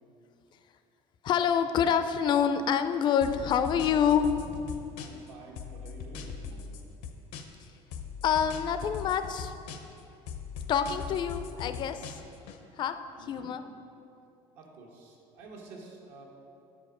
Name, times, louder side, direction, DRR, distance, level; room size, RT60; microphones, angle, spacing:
voice 1, 1.2-4.8 8.2-9.5 10.7-12.2 12.8-13.6, left 8 dB, 40° left, 10 dB, 0.4 m, -27 dB
sound 1, 3.2-5.3 5.6-7.6 7.9-10.0 10.3-12.6, left 6 dB, 80° left, 0.6 m, -40 dB
voice 2, 5.0-6.8 13.2-13.6 14.5-16.3, right 3 dB, 80° right, -1 dB, 1.3 m, -49 dB
6.9 x 5.2 x 4.9 m, 2.7 s
cardioid pair, 140°, 13 cm